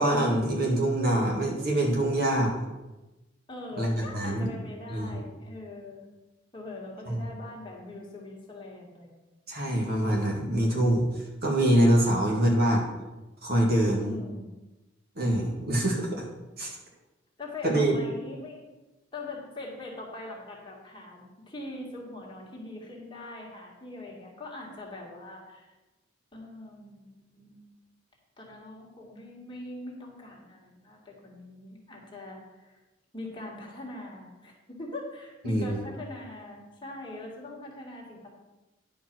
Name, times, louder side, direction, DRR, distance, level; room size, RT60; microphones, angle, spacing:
voice 1, 0.0-2.6 3.8-4.5 4.9-5.2 7.1-7.2 9.5-12.9 13.4-14.1 15.2-16.2 16.6-16.8 17.6-18.0 35.4-35.8, right 1 dB, 55° right, -1 dB, 2.2 m, -25 dB
voice 2, 3.5-6.1 6.5-9.2 14.0-14.5 17.4-18.6 19.1-25.7 26.3-27.6 28.4-32.8 33.1-38.3, left 2 dB, 25° left, -3 dB, 2.1 m, -42 dB
10.5 x 5.1 x 6.2 m, 1.1 s
head